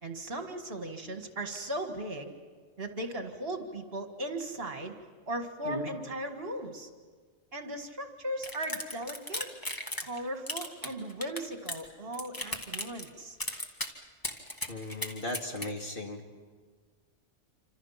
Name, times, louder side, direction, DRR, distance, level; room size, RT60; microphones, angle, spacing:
voice 1, 0.0-2.3 2.8-5.0 5.3-6.9 7.5-9.5 10.0-13.4, right 1 dB, 55° right, 5 dB, 2.1 m, -37 dB
sound 1, 8.4-10.2 10.5-11.8 12.1-13.1 13.4-13.9 14.2-15.7, left 1 dB, 15° left, 1.6 m, -36 dB
voice 2, 14.7-16.2, left 1 dB, 50° left, 1 dB, 2.6 m, -36 dB
27.5 x 26.0 x 5.8 m, 1.5 s
omnidirectional pair, 1.2 m